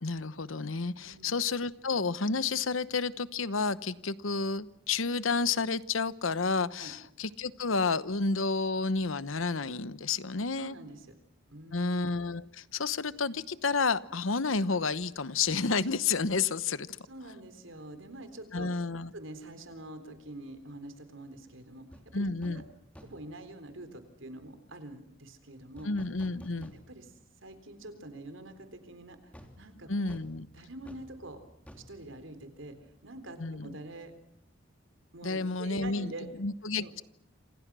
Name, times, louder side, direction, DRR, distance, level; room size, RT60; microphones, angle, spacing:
voice 1, 0.0-10.8 11.7-17.0 18.5-19.1 22.1-22.6 25.8-26.7 29.9-30.5 33.4-33.8 35.2-36.1 36.4-37.0, left 4 dB, 80° left, 15 dB, 1.0 m, -30 dB
voice 2, 10.6-11.1 11.5-12.0 17.1-18.7 19.1-22.6 23.0-25.9 26.7-27.1 27.4-30.2 30.5-31.4 31.7-32.8 33.0-34.1 35.1-36.3 36.8-36.9, right 1 dB, 75° right, 9 dB, 3.8 m, -46 dB
sound 1, 21.9-22.1 22.4-22.7 22.9-23.4 25.8-27.2 27.6-27.7 29.3-33.0 33.2-33.4, equal, 5° left, 3.1 m, -52 dB
27.5 x 27.5 x 6.2 m, 0.77 s
head